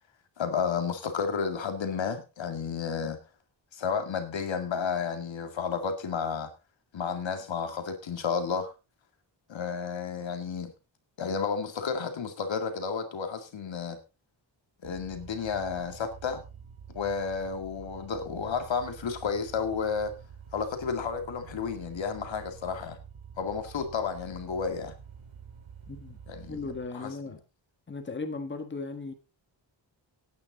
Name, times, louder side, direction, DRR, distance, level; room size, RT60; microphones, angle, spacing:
voice 1, 0.4-3.2 3.7-6.5 6.9-8.7 9.5-10.7 11.2-14.0 14.8-16.4 16.9-20.1 20.5-23.0 23.4-24.9 26.3-26.6 26.9-27.1, left 6 dB, 75° left, 2.2 m, -32 dB
sound 1, 14.8-26.9, right 7 dB, 80° right, 3.3 m, -48 dB
voice 2, 25.9-26.2 26.5-27.4 27.9-29.1, left 3 dB, 25° left, 1.6 m, -37 dB
17.0 x 9.3 x 4.0 m
wide cardioid pair, 170°, 46 cm